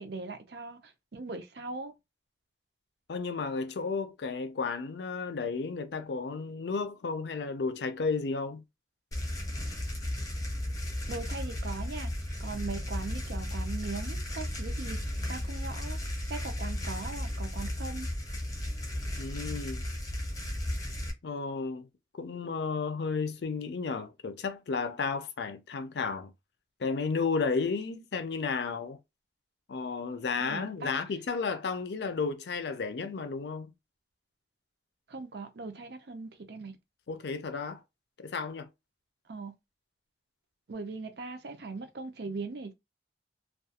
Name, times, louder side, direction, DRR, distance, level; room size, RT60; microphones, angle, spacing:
voice 1, 0.0-1.9 11.1-12.1 12.4-16.0 16.3-18.1 30.4-31.0 35.1-36.7 39.3-39.5 40.7-42.7, right 3 dB, 70° right, 0.6 m, -40 dB
voice 2, 3.1-8.6 19.2-19.8 21.2-21.9 22.2-26.3 26.8-29.0 29.7-33.7 37.1-37.8 38.2-38.7, left 4 dB, 75° left, 0.4 m, -33 dB
sound 1, 9.1-21.1, left 1 dB, 20° left, 0.7 m, -35 dB
2.3 x 2.3 x 2.8 m
head